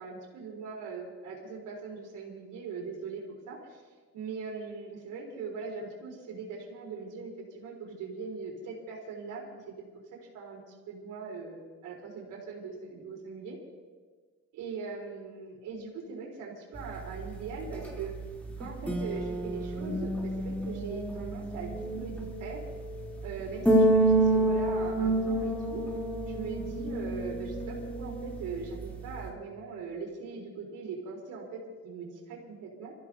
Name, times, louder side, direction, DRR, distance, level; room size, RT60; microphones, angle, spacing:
voice 1, 0.0-3.8 4.1-9.7 10.1-10.6 10.9-13.6 14.5-18.1 18.6-22.6 23.2-25.8 26.3-32.9, right 4 dB, 90° right, -1 dB, 4.3 m, -40 dB
sound 1, 16.8-29.3, right 1 dB, 5° left, 3.8 m, -29 dB
26.0 x 15.0 x 3.0 m, 1.5 s
cardioid pair, 90°, 30 cm